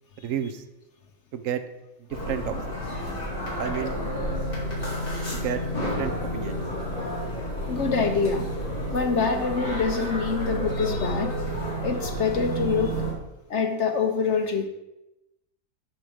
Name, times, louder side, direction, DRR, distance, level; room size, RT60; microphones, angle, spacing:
voice 1, 0.2-0.6 1.3-1.6 2.3-2.8 3.6-4.0 5.3-5.6 6.0-6.6, right 9 dB, 60° right, 9 dB, 0.9 m, -31 dB
sound 1, 2.1-13.1, equal, 30° left, 2.9 m, -30 dB
voice 2, 7.7-8.5 8.9-11.5 11.8-12.9 13.5-14.7, left 5 dB, 55° left, 5 dB, 0.9 m, -25 dB
10.5 x 4.5 x 4.9 m, 0.92 s
omnidirectional pair, 1.8 m